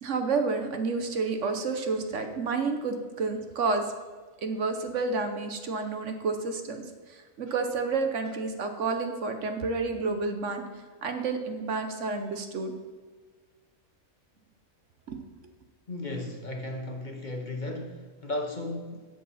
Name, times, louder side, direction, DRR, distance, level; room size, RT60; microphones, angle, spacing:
voice 1, 0.0-3.8 4.4-6.8 7.1-10.6 11.0-12.7 15.1-15.2, right 4 dB, 60° right, 6 dB, 1.2 m, -30 dB
voice 2, 15.9-19.0, left 2 dB, 40° left, 3 dB, 0.9 m, -35 dB
12.5 x 7.6 x 4.2 m, 1.4 s
omnidirectional pair, 1.4 m